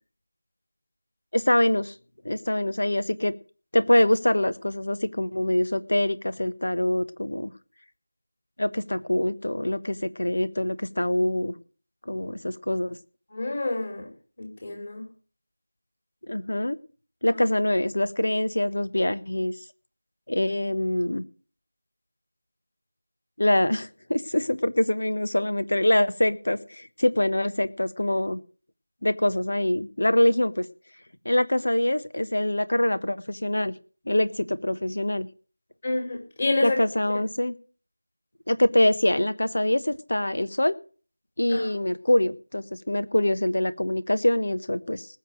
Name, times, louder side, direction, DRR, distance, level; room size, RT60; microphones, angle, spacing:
voice 1, 1.3-1.9 2.2-3.3 3.7-7.5 8.6-11.5 12.1-13.0 16.3-16.8 17.2-19.5 20.3-21.2 23.4-28.4 29.0-30.7 31.2-33.7 34.1-35.3 36.6-37.5 38.5-40.7 41.4-45.1, left 1 dB, 60° left, 13 dB, 1.3 m, -24 dB
voice 2, 13.3-14.1 14.4-15.0 17.3-17.4 35.8-36.8 41.5-41.7, left 2 dB, 35° left, 3 dB, 5.0 m, -28 dB
19.5 x 7.0 x 6.3 m, 0.40 s
figure-of-eight pair, 170°, 0 cm